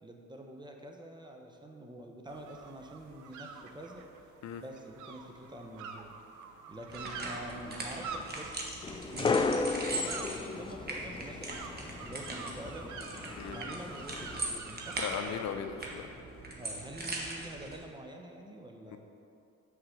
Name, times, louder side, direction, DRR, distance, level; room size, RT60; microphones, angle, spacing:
voice 1, 0.0-4.0 4.6-6.1 6.7-9.5 9.9-12.9 13.5-15.0 16.6-19.0, right 1 dB, 15° right, 2 dB, 0.9 m, -46 dB
sound 1, 2.3-15.4, right 5 dB, 75° right, 0.6 m, -47 dB
sound 2, 6.9-17.8, right 2 dB, 35° right, 1.4 m, -40 dB
sound 3, 8.8-14.6, left 4 dB, 15° left, 0.3 m, -35 dB
voice 2, 15.0-16.1 18.9-19.0, left 7 dB, 65° left, 6 dB, 0.6 m, -37 dB
6.3 x 4.9 x 6.3 m, 2.6 s
cardioid pair, 90°, 30 cm